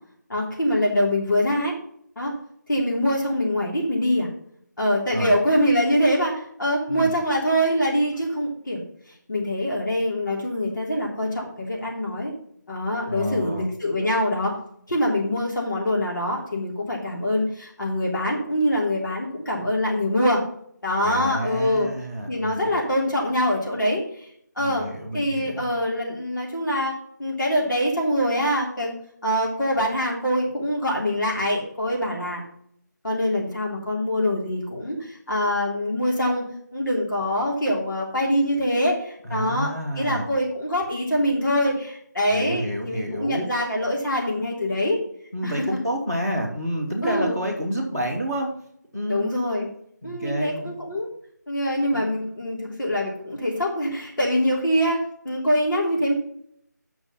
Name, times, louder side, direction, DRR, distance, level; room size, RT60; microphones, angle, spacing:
voice 1, 0.3-1.7 2.1-2.3 2.7-4.3 4.8-8.8 9.1-12.3 12.7-14.6 14.9-20.4 20.8-21.9 22.3-24.3 24.5-24.9 25.1-28.9 29.2-32.4 33.0-36.4 36.7-39.7 40.0-45.0 45.4-45.6 47.0-47.4 49.1-49.7 50.0-51.1 51.5-56.1, equal, 90° left, -3 dB, 3.4 m, -24 dB
voice 2, 13.1-13.7 21.0-22.7 24.6-25.7 39.2-40.3 42.3-43.5 45.3-48.5 48.9-49.3 50.0-50.7 51.9-52.1, equal, 10° left, -5 dB, 1.4 m, -29 dB
7.9 x 6.0 x 5.7 m, 0.68 s
figure-of-eight pair, 175°, 10 cm